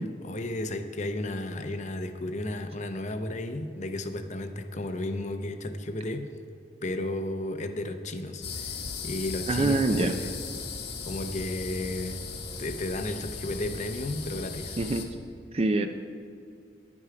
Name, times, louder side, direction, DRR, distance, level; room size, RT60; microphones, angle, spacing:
voice 1, 0.0-6.3 6.8-10.3 11.1-12.2 12.6-14.8, left 1 dB, 40° left, 8 dB, 0.7 m, -33 dB
sound 1, 8.4-15.0, left 4 dB, 65° left, 1.5 m, -37 dB
voice 2, 9.5-10.2 14.8-15.1 15.5-15.9, right 2 dB, 35° right, 6 dB, 0.5 m, -25 dB
11.0 x 9.8 x 4.8 m, 2.2 s
head